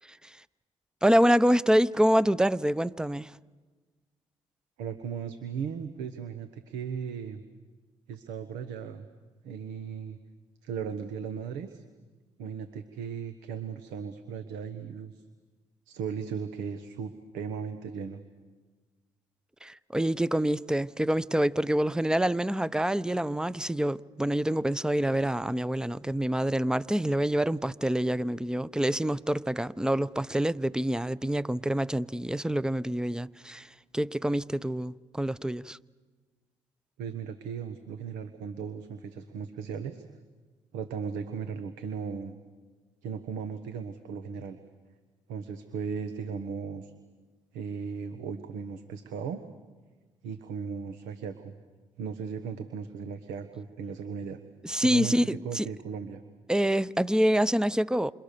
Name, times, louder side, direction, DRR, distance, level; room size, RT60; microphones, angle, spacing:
voice 1, 1.0-3.3 19.6-35.8 54.6-55.7 56.5-58.1, equal, 5° right, 0.7 m, -26 dB
voice 2, 4.8-7.4 8.1-9.1 9.4-10.2 10.6-11.8 12.4-15.2 15.9-18.2 37.0-40.0 40.7-42.4 43.0-44.6 45.3-46.9 47.5-49.4 50.2-51.5 52.0-54.4 54.8-55.2 55.4-56.2, right 6 dB, 85° right, 1.3 m, -37 dB
28.0 x 27.5 x 6.9 m
supercardioid pair, 60°, 14 cm